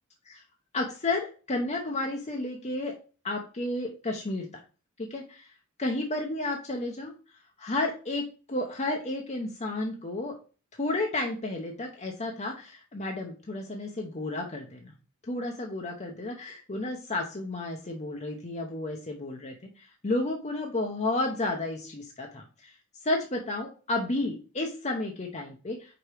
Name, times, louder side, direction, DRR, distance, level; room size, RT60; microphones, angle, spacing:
voice 1, 0.7-3.0 3.2-4.5 5.0-5.4 5.8-7.1 7.6-10.4 10.8-14.9 15.2-22.8 23.0-26.0, left 2 dB, 35° left, 1 dB, 0.9 m, -32 dB
4.9 x 4.4 x 4.9 m, 0.35 s
head